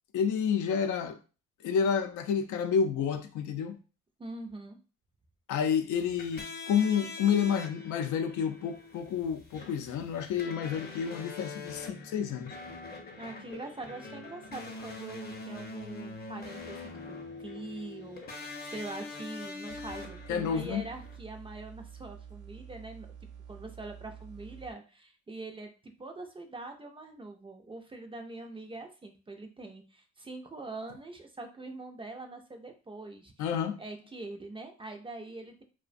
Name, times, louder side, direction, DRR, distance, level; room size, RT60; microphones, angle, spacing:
voice 1, 0.1-1.2 1.6-3.8 5.5-12.6 20.3-20.8 33.4-33.8, left 7 dB, 75° left, 0.5 m, -29 dB
voice 2, 4.2-4.8 13.2-16.9 17.4-33.5 33.8-35.6, right 2 dB, 20° right, 0.4 m, -43 dB
sound 1, 6.0-21.2, left 3 dB, 30° left, 0.6 m, -44 dB
sound 2, 19.7-24.7, right 8 dB, 75° right, 0.5 m, -48 dB
2.4 x 2.1 x 2.5 m
cardioid pair, 90°, 30 cm